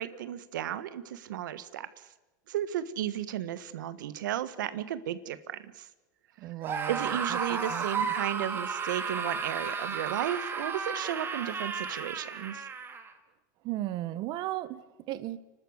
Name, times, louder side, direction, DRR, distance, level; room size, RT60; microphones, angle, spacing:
voice 1, 0.0-1.9 2.5-5.9 6.9-12.7, right 11 dB, 90° right, 14 dB, 1.5 m, -34 dB
voice 2, 6.4-8.1 13.6-15.4, right 14 dB, 45° right, 14 dB, 1.4 m, -36 dB
Screaming, 6.6-13.1, right 5 dB, 20° right, 2.4 m, -33 dB
30.0 x 12.5 x 8.1 m, 1.1 s
supercardioid pair, 130°, 10 cm